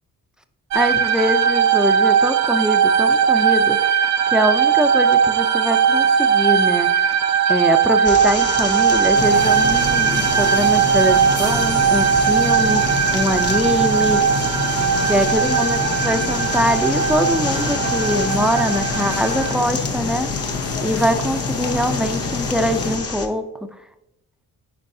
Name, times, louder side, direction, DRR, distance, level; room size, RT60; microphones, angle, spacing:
voice 1, 0.7-3.8 4.3-7.0 7.5-14.2 15.1-20.3 20.8-23.5, equal, ahead, 8 dB, 0.5 m, -23 dB
sound 1, 0.7-19.5, right 7 dB, 45° right, 0.5 m, -19 dB
sound 2, 8.0-23.3, left 4 dB, 40° left, 1.0 m, -29 dB
sound 3, 9.1-23.0, left 4 dB, 90° left, 1.2 m, -27 dB
9.6 x 4.5 x 2.7 m, 0.93 s
cardioid pair, 75°, 37 cm